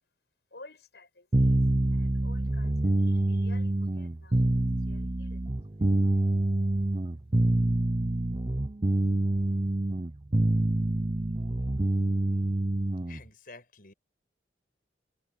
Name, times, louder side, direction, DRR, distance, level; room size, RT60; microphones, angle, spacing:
voice 1, 0.5-1.6 1.9-5.9, left 2 dB, 70° left, 6.4 m, -54 dB
sound 1, 1.3-13.2, right 1 dB, 30° right, 0.7 m, -26 dB
voice 2, 13.1-13.9, left 4 dB, 55° left, 6.3 m, -49 dB
head